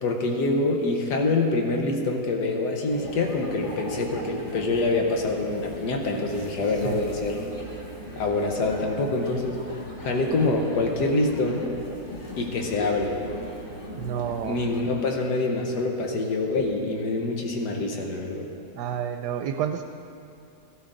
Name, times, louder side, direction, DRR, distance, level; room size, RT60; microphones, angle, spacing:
voice 1, 0.0-7.4 8.2-9.6 10.0-11.7 12.4-13.2 14.4-18.5, left 2 dB, 80° left, 2 dB, 1.7 m, -25 dB
sound 1, 2.9-14.8, left 1 dB, 30° left, 1.8 m, -39 dB
voice 2, 13.9-14.6 18.8-19.8, right 9 dB, 85° right, 6 dB, 1.2 m, -29 dB
16.5 x 12.5 x 3.8 m, 2.7 s
omnidirectional pair, 1.7 m